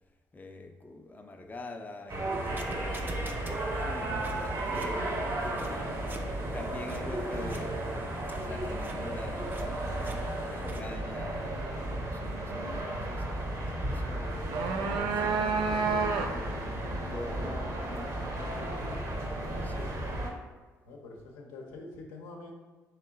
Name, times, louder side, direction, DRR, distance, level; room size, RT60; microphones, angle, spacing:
voice 1, 0.3-7.8 8.4-18.8 19.6-20.0, left 2 dB, 20° left, 4 dB, 0.6 m, -45 dB
sound 1, 2.1-20.3, right 1 dB, 50° right, 1.2 m, -34 dB
sound 2, 2.3-10.8, right 1 dB, 25° right, 0.6 m, -43 dB
sound 3, 14.3-16.6, right 5 dB, 70° right, 0.4 m, -30 dB
voice 2, 20.9-22.5, left 3 dB, 80° left, -1 dB, 0.8 m, -45 dB
3.6 x 3.2 x 4.6 m, 1.3 s
hypercardioid pair, 50°, 8 cm